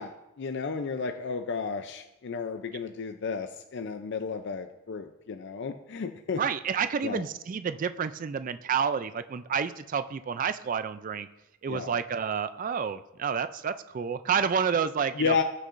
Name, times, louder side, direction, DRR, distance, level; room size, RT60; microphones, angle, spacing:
voice 1, 0.0-6.4 7.0-7.2 11.7-12.0 15.1-15.4, left 5 dB, 55° left, 7 dB, 0.5 m, -32 dB
voice 2, 6.4-11.3 11.6-15.3, right 6 dB, 40° right, 12 dB, 0.3 m, -29 dB
19.5 x 6.5 x 2.5 m, 0.94 s
head